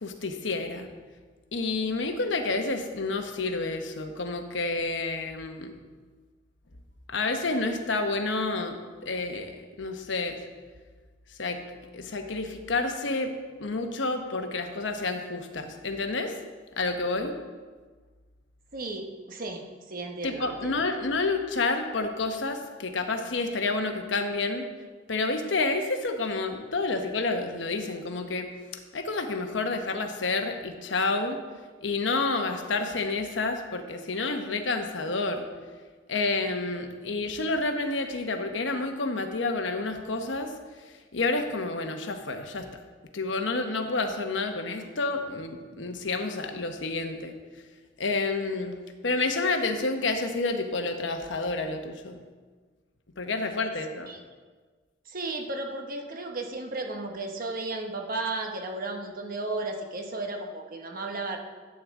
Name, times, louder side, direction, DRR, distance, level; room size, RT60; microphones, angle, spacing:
voice 1, 0.0-0.9 1.5-5.7 7.1-8.8 9.0-10.4 11.4-11.6 11.9-13.3 13.6-16.3 16.8-17.3 20.2-24.7 25.1-28.5 28.9-31.4 31.8-35.5 36.1-40.5 41.1-42.7 43.1-47.3 48.0-52.2 53.2-54.1, left 3 dB, 80° left, 6 dB, 1.0 m, -29 dB
voice 2, 18.7-20.8 54.1-54.2 55.1-61.4, right 2 dB, 50° right, 3 dB, 1.2 m, -34 dB
12.5 x 8.6 x 3.7 m, 1.5 s
head